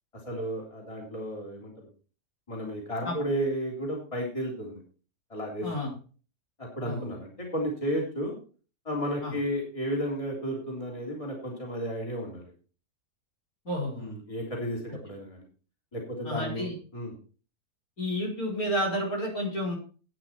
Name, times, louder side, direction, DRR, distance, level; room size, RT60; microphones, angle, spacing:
voice 1, 0.3-1.9 2.5-4.8 5.3-5.7 6.6-8.4 8.9-12.5 14.0-15.4 15.9-17.1, equal, 20° left, -1 dB, 3.5 m, -33 dB
voice 2, 13.6-14.1 16.2-16.7 18.0-19.8, equal, 65° left, -2 dB, 5.1 m, -30 dB
12.0 x 9.1 x 4.5 m, 0.38 s
omnidirectional pair, 1.6 m